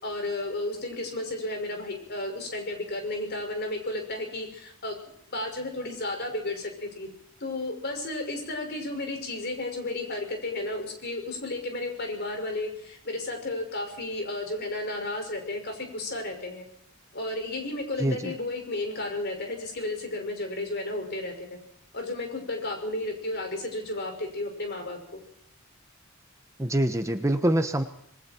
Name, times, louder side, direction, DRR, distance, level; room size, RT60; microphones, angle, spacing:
voice 1, 0.0-5.0 5.3-7.1 7.4-16.6 17.1-21.6 21.9-25.2, left 2 dB, 50° left, 3 dB, 6.0 m, -33 dB
voice 2, 18.0-18.3 26.6-27.8, right 1 dB, 15° right, 8 dB, 1.0 m, -25 dB
27.0 x 21.0 x 4.6 m, 0.68 s
head